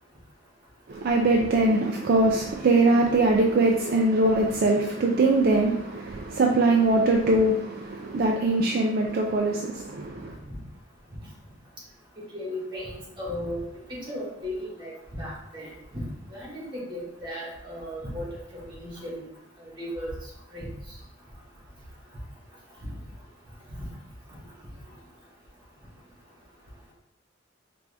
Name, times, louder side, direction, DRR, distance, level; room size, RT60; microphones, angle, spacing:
voice 1, 0.9-10.3, right 2 dB, 55° right, 0.4 m, -22 dB
voice 2, 12.3-13.6 13.9-16.0 16.3-19.2 19.6-20.1 20.5-20.7, equal, 25° right, 1.5 m, -36 dB
4.7 x 2.6 x 3.3 m
head